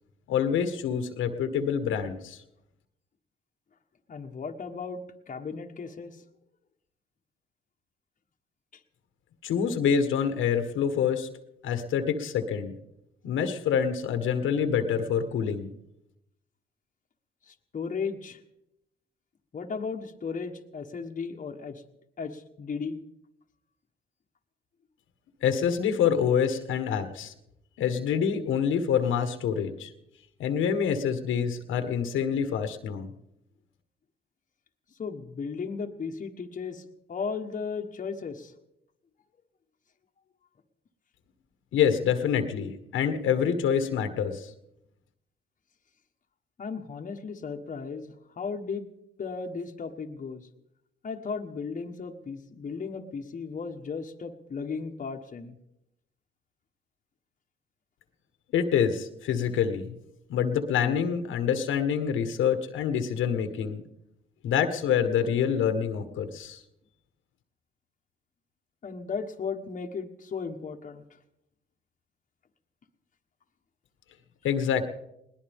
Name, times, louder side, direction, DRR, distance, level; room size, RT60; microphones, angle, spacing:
voice 1, 0.3-2.4 9.4-11.3 11.6-12.8 13.2-15.7 25.4-27.3 27.8-29.9 30.4-33.1 41.7-44.5 58.5-59.9 60.3-63.8 64.4-66.6 74.4-74.8, left 7 dB, 85° left, 8 dB, 1.5 m, -26 dB
voice 2, 4.1-6.1 17.5-18.4 19.5-21.7 22.2-23.0 35.0-38.5 46.6-48.8 49.2-50.4 51.0-55.5 68.8-71.0, left 5 dB, 40° left, 4 dB, 1.3 m, -35 dB
21.0 x 19.0 x 3.6 m, 0.81 s
cardioid pair, 90°, 20 cm